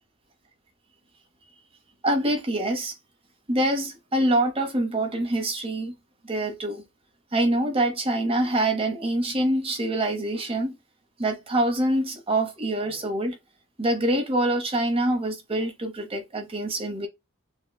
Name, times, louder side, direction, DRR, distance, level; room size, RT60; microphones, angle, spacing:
voice 1, 2.0-2.9 3.5-5.9 6.2-6.8 7.3-10.8 11.2-13.4 13.8-17.1, right 1 dB, 25° right, 0.9 m, -25 dB
6.3 x 2.2 x 2.2 m
head